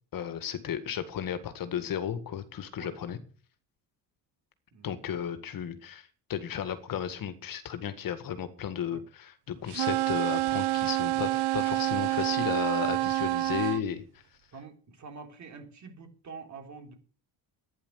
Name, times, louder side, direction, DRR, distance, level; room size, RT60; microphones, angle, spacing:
voice 1, 0.1-3.2 4.8-14.0, left 9 dB, 55° left, 11 dB, 1.9 m, -34 dB
sound 1, 9.7-13.8, right 18 dB, 70° right, 0.5 m, -28 dB
voice 2, 14.5-16.9, right 4 dB, 40° right, 5 dB, 3.8 m, -46 dB
12.0 x 9.9 x 8.1 m, 0.42 s
cardioid pair, 140°, 41 cm